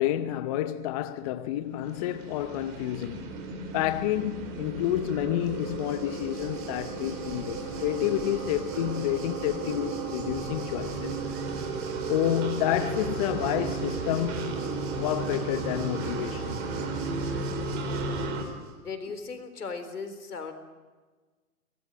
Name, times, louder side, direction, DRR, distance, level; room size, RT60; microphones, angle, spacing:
voice 1, 0.0-3.3 3.7-11.2 12.1-14.6 14.9-16.6, left 13 dB, 25° left, 0.7 m, -29 dB
sound 1, 1.7-18.4, right 3 dB, 30° right, 4.3 m, -34 dB
Waves surf, 5.4-18.7, right 6 dB, 55° right, 5.3 m, -50 dB
voice 2, 18.8-20.5, left 4 dB, 80° left, 4.0 m, -37 dB
23.0 x 19.5 x 9.0 m
hypercardioid pair, 135°, 44 cm